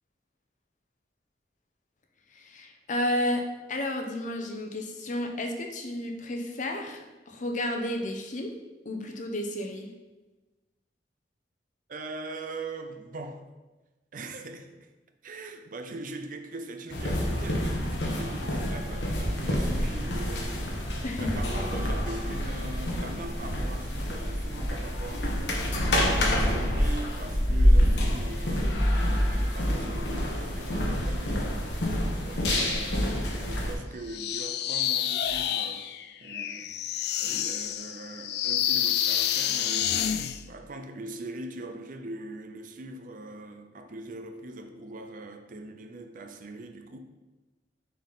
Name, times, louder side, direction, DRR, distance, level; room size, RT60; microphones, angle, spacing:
voice 1, 2.3-8.5 8.8-9.9 21.0-21.4, left 1 dB, 45° left, 0.8 m, -32 dB
voice 2, 11.9-13.4 14.1-14.9 15.2-25.5 26.0-31.9 32.2-35.9 36.2-47.0, right 2 dB, 50° right, 0.6 m, -41 dB
sound 1, 16.9-33.8, equal, 80° left, 1.2 m, -27 dB
sound 2, 34.1-40.4, left 10 dB, 65° left, 0.3 m, -28 dB
6.6 x 4.2 x 4.0 m
head